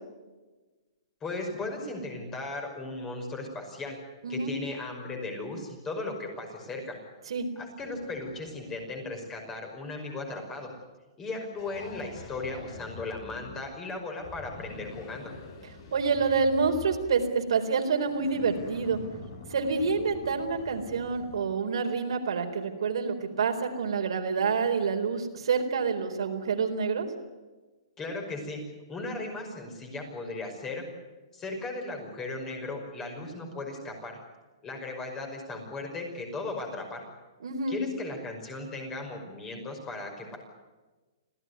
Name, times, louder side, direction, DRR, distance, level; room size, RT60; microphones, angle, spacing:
voice 1, 1.2-4.0 4.3-7.0 7.6-10.7 11.2-15.3 28.0-28.6 28.9-30.8 31.3-34.1 34.6-37.0 37.7-40.4, left 2 dB, 15° left, 3 dB, 5.5 m, -37 dB
voice 2, 4.2-4.5 7.3-7.5 15.9-19.0 19.5-27.1 37.4-37.8, right 5 dB, 80° right, 3 dB, 4.1 m, -27 dB
sound 1, 7.8-10.6 11.5-13.8 14.2-17.5 18.0-21.4, left 3 dB, 45° left, 7.7 m, -46 dB
26.5 x 16.5 x 9.7 m, 1.2 s
hypercardioid pair, 160°, 3 cm